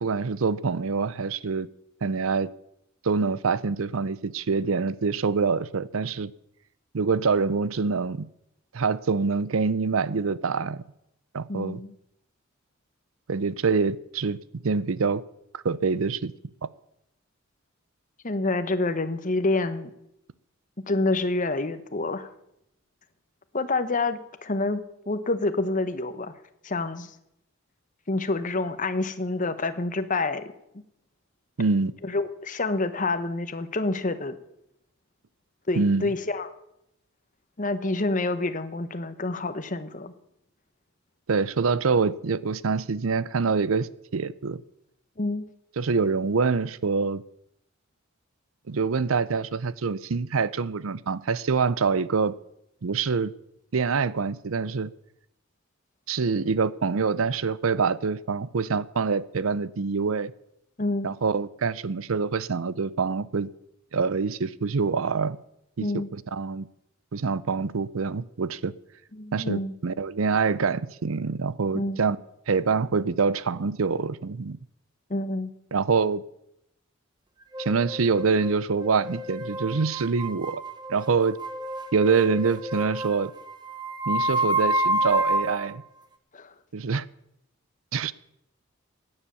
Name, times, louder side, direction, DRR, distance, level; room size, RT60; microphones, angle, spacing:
voice 1, 0.0-1.7 2.0-2.5 3.0-6.3 6.9-8.3 8.7-10.8 11.3-11.8 13.3-14.4 14.6-15.2 15.5-16.3 31.6-31.9 35.8-36.1 41.3-44.6 45.8-47.2 48.7-52.3 52.8-53.3 53.7-54.9 56.1-60.3 61.0-63.5 63.9-65.4 65.8-66.7 67.1-68.7 69.3-72.2 72.5-74.6 75.7-76.2 77.6-80.6 80.9-81.4 81.9-83.3 84.1-85.8 86.7-87.1 87.9-88.1, right 5 dB, 80° right, 0.6 m, -25 dB
voice 2, 11.5-11.9 18.2-19.9 20.9-22.3 23.5-24.8 25.1-26.3 26.6-27.1 28.1-30.5 32.0-34.4 35.7-36.5 37.6-40.1 45.2-45.4 60.8-61.1 65.8-66.1 69.1-69.7 71.7-72.0 75.1-75.5 86.3-86.5, left 2 dB, 40° left, 1.0 m, -27 dB
sound 1, 77.5-85.7, right 1 dB, 20° right, 1.1 m, -29 dB
16.0 x 9.9 x 6.9 m
head